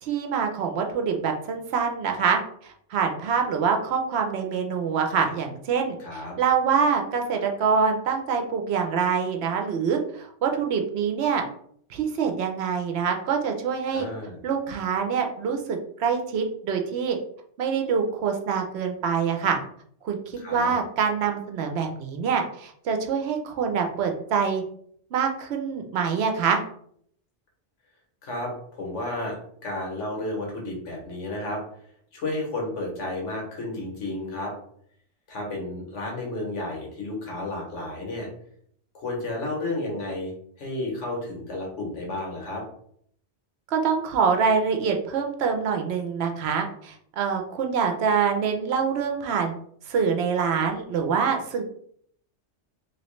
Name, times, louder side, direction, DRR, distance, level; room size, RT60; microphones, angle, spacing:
voice 1, 0.0-11.4 11.9-14.1 14.4-17.2 17.6-19.6 20.0-24.6 25.1-26.6 43.7-49.5 49.9-51.6, right 6 dB, 70° right, 4 dB, 0.8 m, -25 dB
voice 2, 6.0-6.3 13.9-14.4 20.4-20.7 28.2-29.4 29.6-31.6 32.1-34.5 35.3-38.3 38.9-40.3 40.6-42.6, left 2 dB, 85° left, -1 dB, 1.4 m, -32 dB
2.9 x 2.9 x 3.1 m, 0.65 s
omnidirectional pair, 1.2 m